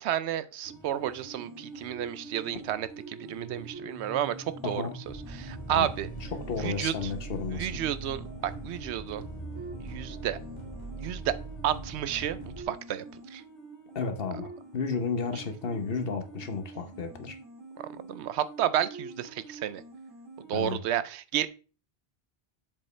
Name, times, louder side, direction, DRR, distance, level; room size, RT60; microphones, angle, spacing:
voice 1, 0.0-4.8 5.3-6.1 6.6-7.1 7.5-9.2 9.8-10.4 11.0-11.4 11.6-13.0 13.3-13.4 17.8-19.8 20.5-21.5, right 11 dB, 85° right, 0.8 m, -31 dB
sound 1, 0.6-20.5, right 3 dB, 25° right, 2.0 m, -46 dB
voice 2, 4.6-4.9 5.7-5.9 6.3-7.8 13.9-17.4 20.5-20.8, left 5 dB, 60° left, 1.1 m, -33 dB
sound 2, 5.0-12.6, right 2 dB, 45° left, 1.6 m, -41 dB
7.2 x 5.1 x 3.2 m
omnidirectional pair, 1.1 m